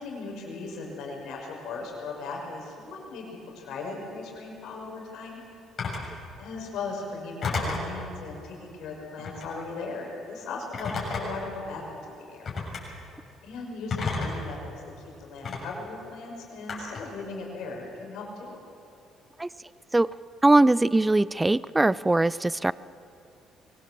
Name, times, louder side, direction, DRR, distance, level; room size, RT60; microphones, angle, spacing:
voice 1, 0.0-5.4 6.0-12.5 12.8-13.0 13.4-14.7 15.2-18.6, left 3 dB, 75° left, 0 dB, 6.0 m, -38 dB
Telephone, 5.8-6.1 7.4-7.9 9.2-9.5 10.7-11.5 12.5-12.8 13.9-14.5 15.4-15.6 16.7-17.1, left 4 dB, 45° left, 7.4 m, -31 dB
voice 2, 20.4-22.7, right 2 dB, 15° right, 19 dB, 0.4 m, -21 dB
23.5 x 18.0 x 7.8 m, 2.9 s
cardioid pair, 85°, 0 cm